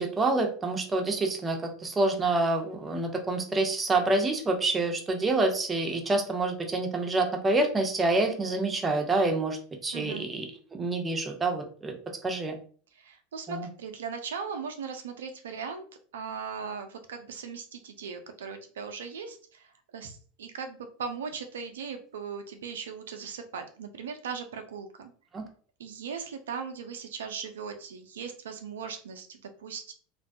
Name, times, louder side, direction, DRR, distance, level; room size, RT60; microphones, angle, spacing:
voice 1, 0.0-10.5 10.7-11.9 12.2-12.6 13.5-13.7 25.3-25.4, right 2 dB, 20° right, 3 dB, 0.6 m, -27 dB
voice 2, 9.9-10.3 12.9-15.8 16.1-25.1 25.8-29.9, right 6 dB, 80° right, 7 dB, 0.4 m, -38 dB
2.5 x 2.2 x 2.5 m, 0.43 s
hypercardioid pair, 85°, 0 cm